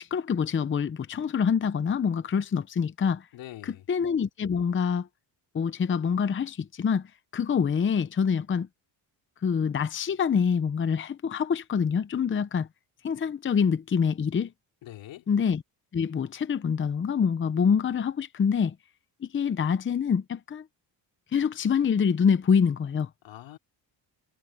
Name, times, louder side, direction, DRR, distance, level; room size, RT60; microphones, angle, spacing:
voice 1, 0.0-3.3 3.6-5.1 5.5-7.0 7.3-8.7 9.4-12.7 13.0-14.5 15.3-15.6 15.9-18.7 19.2-20.6 21.3-23.1, left 6 dB, 25° left, 0.8 m, -26 dB
voice 2, 3.3-3.9 14.8-15.3 23.2-23.6, left 13 dB, 85° left, 3.1 m, -43 dB
cardioid pair, 120°, 44 cm